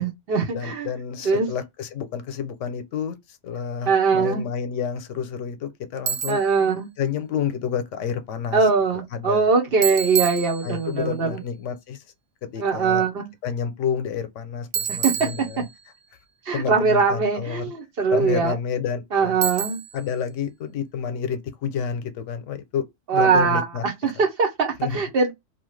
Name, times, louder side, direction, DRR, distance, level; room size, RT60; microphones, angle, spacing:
voice 1, 0.0-0.9 1.2-1.5 3.9-4.4 6.3-6.9 8.5-11.4 12.6-13.3 15.0-15.1 16.5-18.6 19.1-19.8 23.1-23.6 24.0-25.3, right 5 dB, 55° right, 0.9 m, -21 dB
voice 2, 0.5-6.4 7.0-9.5 10.6-12.0 12.4-13.0 13.4-15.7 16.5-17.7 18.1-19.4 19.9-22.8 23.1-23.8 24.8-25.0, left 7 dB, 90° left, 1.0 m, -29 dB
Bicycle, 6.1-6.6 9.8-11.0 14.7-16.0 19.4-20.1, right 7 dB, 85° right, 0.9 m, -28 dB
2.8 x 2.3 x 3.1 m
omnidirectional pair, 1.2 m